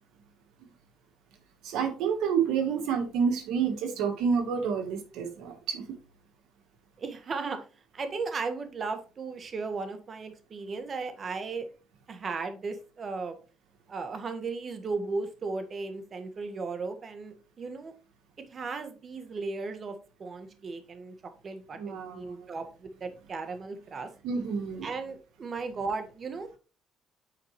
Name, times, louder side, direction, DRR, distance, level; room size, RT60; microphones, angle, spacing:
voice 1, 1.6-5.8 21.8-22.5 24.2-24.9, right 6 dB, 80° right, 1.3 m, -29 dB
voice 2, 7.0-7.6 7.9-11.7 12.1-13.4 13.9-17.9 18.5-21.1 21.4-24.1 24.8-26.6, right 4 dB, 45° right, 1.5 m, -36 dB
9.2 x 4.7 x 3.1 m
cardioid pair, 85°, 0 cm